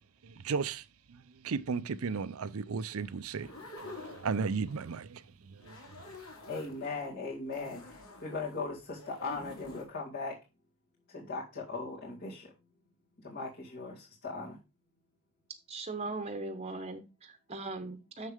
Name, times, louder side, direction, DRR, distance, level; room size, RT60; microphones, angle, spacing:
voice 1, 0.2-3.5 3.8-5.8, right 5 dB, 70° right, 0.5 m, -35 dB
sound 1, 3.3-5.0 5.5-7.1 7.5-9.9, left 2 dB, 75° left, 2.9 m, -48 dB
voice 2, 6.5-10.4 11.1-12.5 13.2-14.6, left 3 dB, 50° left, 2.2 m, -39 dB
voice 3, 15.7-18.3, right 3 dB, 30° right, 0.9 m, -39 dB
6.6 x 6.4 x 3.5 m
head